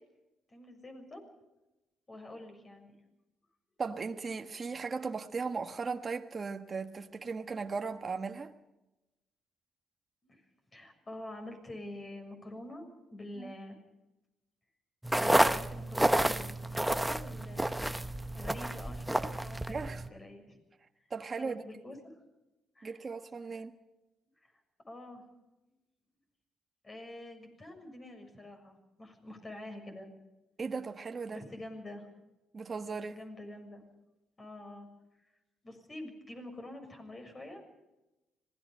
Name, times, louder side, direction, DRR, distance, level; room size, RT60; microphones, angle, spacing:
voice 1, 0.5-1.2 2.1-2.9 10.2-10.4 10.7-13.8 15.2-17.9 18.3-20.6 21.3-22.2 22.7-22.9 24.4-24.5 24.9-25.2 26.8-30.1 31.3-32.1 33.1-33.8 34.4-34.9 35.6-37.6, left 1 dB, 30° left, 6.7 m, -47 dB
voice 2, 3.8-8.5 13.4-13.5 19.7-20.0 21.1-21.6 22.8-23.8 30.6-31.4 32.5-33.2, right 4 dB, 35° right, 1.4 m, -37 dB
sound 1, 15.0-20.1, right 1 dB, 5° right, 1.1 m, -30 dB
26.0 x 18.5 x 5.4 m
cardioid pair, 90°, 0 cm